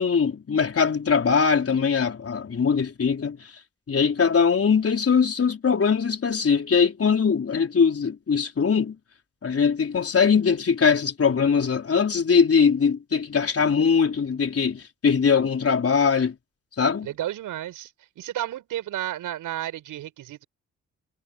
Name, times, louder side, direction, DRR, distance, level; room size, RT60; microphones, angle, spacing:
voice 1, 0.0-3.5 3.9-9.0 9.4-16.3 16.8-17.1, left 6 dB, 45° left, 4.5 m, -21 dB
voice 2, 17.0-20.4, right 13 dB, 80° right, 7.5 m, -32 dB
supercardioid pair, 55°, 31 cm